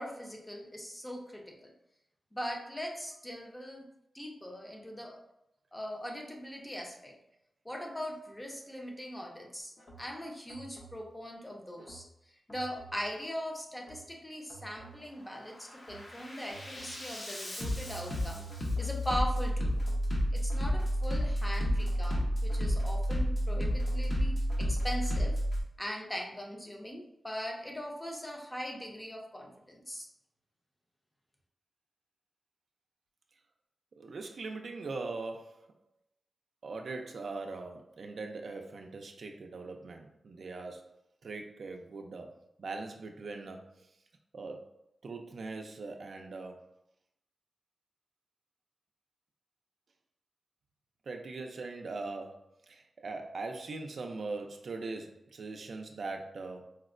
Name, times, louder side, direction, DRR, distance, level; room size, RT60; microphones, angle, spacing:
voice 1, 0.0-1.7 2.3-3.9 4.1-5.2 5.7-7.1 7.6-9.7 10.0-12.0 12.5-19.7 20.3-25.4 25.8-30.1, equal, 15° left, 0 dB, 0.6 m, -40 dB
Bass drum, 9.8-10.0 10.5-11.0 11.8-12.0 12.5-13.0 13.8-14.0 14.5-15.0 15.4-25.6, equal, 60° left, 0.9 m, -32 dB
voice 2, 34.0-35.8 36.6-43.9 44.3-44.7 45.0-46.7 51.0-56.8, right 3 dB, 70° right, 3 dB, 0.4 m, -41 dB
4.3 x 2.0 x 2.4 m, 0.80 s
wide cardioid pair, 95°, 0 cm